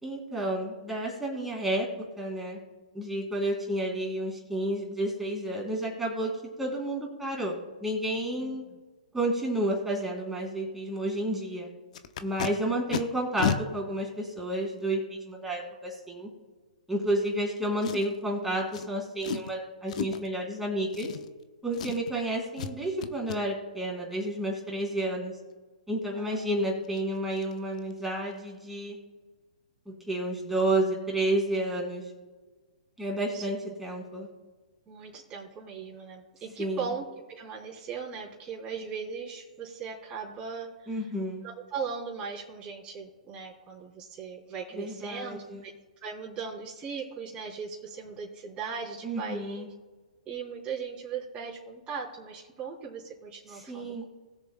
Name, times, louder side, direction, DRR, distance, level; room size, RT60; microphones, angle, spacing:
voice 1, 0.0-1.9 2.2-2.6 2.9-6.3 6.6-8.6 9.1-11.7 12.2-16.3 16.9-21.1 21.6-25.3 25.9-29.0 29.8-32.0 33.0-34.3 36.6-36.9 40.9-41.4 44.7-45.6 49.0-49.7 53.5-54.1, right 1 dB, 5° right, -2 dB, 3.5 m, -31 dB
voice 2, 8.4-8.8 26.1-26.5 33.3-33.5 34.9-40.9 41.4-45.7 46.0-49.7 50.2-54.1, right 6 dB, 20° right, -5 dB, 3.3 m, -38 dB
Packing tape duct tape, 11.9-12.5 12.9-13.0 13.4-13.6 14.4-14.5 17.8-18.2 18.7-18.9 19.2-19.5 19.9-20.3 20.9-21.5 21.7-22.2 22.6-22.7 23.0-23.4 26.4-26.5 26.8-27.0 27.4-27.5 27.8-28.1 28.3-28.4, left 7 dB, 60° left, 0.9 m, -32 dB
21.0 x 7.0 x 2.3 m, 1.3 s
hypercardioid pair, 130°, 4 cm